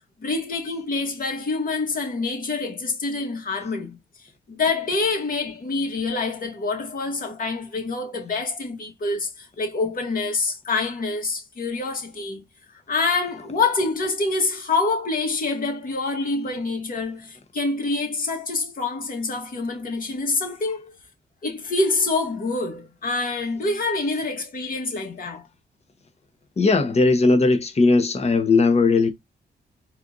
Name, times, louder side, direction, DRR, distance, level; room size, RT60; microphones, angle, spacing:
voice 1, 0.2-4.0 4.5-12.4 12.9-20.9 21.4-25.5, left 3 dB, 50° left, 1.8 m, -26 dB
voice 2, 26.6-29.1, left 3 dB, 35° left, 1.0 m, -18 dB
4.3 x 2.5 x 3.9 m
cardioid pair, 75°, 18 cm